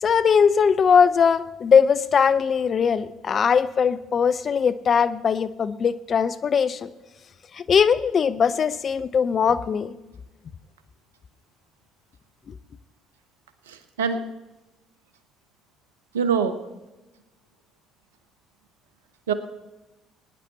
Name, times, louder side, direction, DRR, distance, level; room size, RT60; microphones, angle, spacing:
voice 1, 0.0-6.9 7.5-9.9, left 6 dB, 45° left, 13 dB, 0.7 m, -20 dB
voice 2, 13.7-14.2 16.1-16.6 19.3-19.4, right 6 dB, 80° right, 11 dB, 0.9 m, -24 dB
20.5 x 10.0 x 4.1 m, 1.1 s
hypercardioid pair, 55°, 0 cm